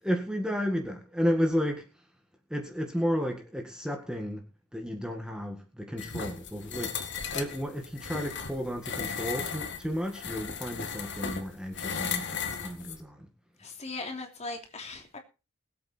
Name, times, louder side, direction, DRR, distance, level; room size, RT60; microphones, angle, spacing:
voice 1, 0.0-2.0 2.5-4.4 4.7-13.3, equal, 5° right, 1.9 m, -32 dB
sound 1, 6.0-13.0, left 6 dB, 50° left, 2.0 m, -36 dB
voice 2, 13.6-15.2, left 3 dB, 30° left, 3.1 m, -39 dB
21.5 x 8.6 x 4.5 m
head